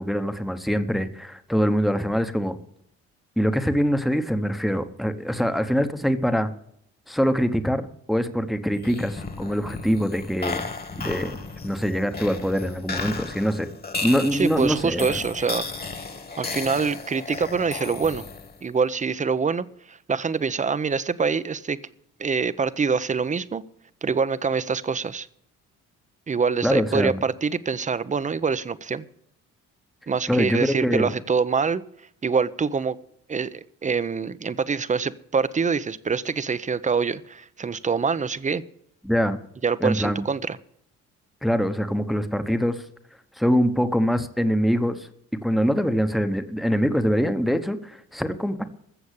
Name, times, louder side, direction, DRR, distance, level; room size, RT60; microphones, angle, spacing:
voice 1, 0.0-2.6 3.4-6.5 7.1-10.7 11.0-11.4 11.6-13.7 14.0-15.2 26.6-27.2 30.3-31.1 39.0-39.4 39.8-40.2 41.4-42.8 43.4-45.1 45.4-48.7, equal, ahead, 9 dB, 1.1 m, -24 dB
sound 1, 8.7-18.6, left 3 dB, 30° left, 1.9 m, -34 dB
voice 2, 14.3-15.7 16.4-18.2 18.6-21.8 22.2-23.6 24.0-25.3 26.3-29.1 30.1-31.8 32.2-33.0 33.3-38.6 39.6-40.6, right 5 dB, 25° right, 15 dB, 0.7 m, -25 dB
15.0 x 7.1 x 8.3 m, 0.71 s
cardioid pair, 90°, 30 cm